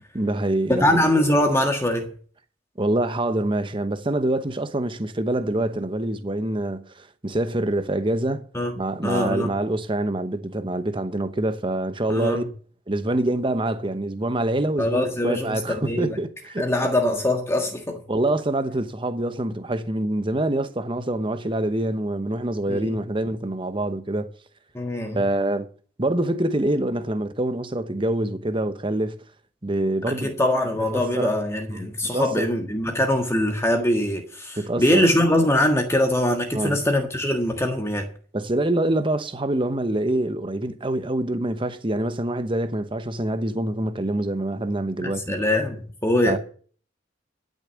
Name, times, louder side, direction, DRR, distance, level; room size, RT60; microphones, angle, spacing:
voice 1, 0.1-1.0 2.8-8.5 8.7-12.4 12.9-16.9 18.1-24.3 25.1-25.7 26.0-29.2 29.6-30.3 30.9-31.3 31.7-32.5 34.6-35.1 36.5-36.8 38.3-45.4 46.3-46.4, right 1 dB, 30° right, 1.0 m, -25 dB
voice 2, 0.8-2.1 8.5-8.7 9.0-9.5 12.1-12.4 14.8-16.2 16.6-18.0 22.7-22.9 24.7-25.2 30.2-38.1 45.0-46.4, left 1 dB, 15° left, 1.6 m, -23 dB
12.0 x 6.7 x 8.2 m
head